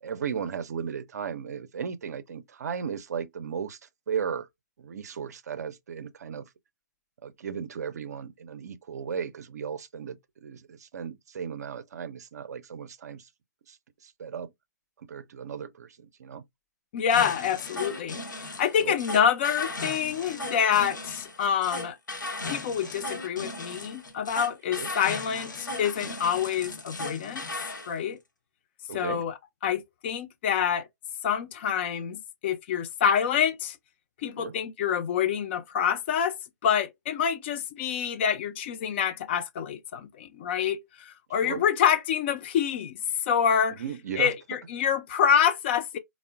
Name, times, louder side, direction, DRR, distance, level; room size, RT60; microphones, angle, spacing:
voice 1, 0.0-3.8 4.1-4.5 4.8-6.5 7.2-13.3 13.7-13.8 14.0-14.5 15.0-16.4 18.8-19.0 24.7-24.9 28.9-29.2 34.4-34.5 41.4-41.6 43.8-44.3, right 7 dB, 60° right, 0.5 m, -35 dB
voice 2, 16.9-22.0 22.5-27.4 27.9-28.2 28.9-29.3 29.6-30.9 31.2-33.8 34.2-36.4 36.6-43.0 43.3-43.8 44.2-46.0, left 8 dB, 35° left, 0.4 m, -27 dB
sound 1, 17.1-27.9, left 2 dB, 80° left, 0.8 m, -37 dB
3.5 x 2.0 x 2.3 m
figure-of-eight pair, 130°, 10 cm